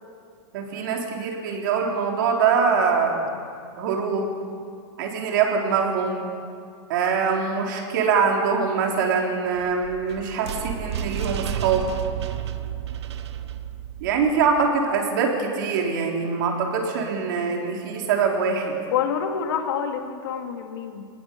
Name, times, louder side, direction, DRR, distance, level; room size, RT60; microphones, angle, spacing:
voice 1, 0.5-3.2 3.8-4.3 5.0-6.3 6.9-11.9 14.0-18.8, right 5 dB, 45° right, 1 dB, 4.0 m, -23 dB
sound 1, 9.5-14.7, right 10 dB, 70° right, 1.3 m, -32 dB
voice 2, 18.9-21.1, left 7 dB, 60° left, 4 dB, 2.6 m, -27 dB
26.0 x 19.5 x 7.0 m, 2.3 s
supercardioid pair, 175°, 15 cm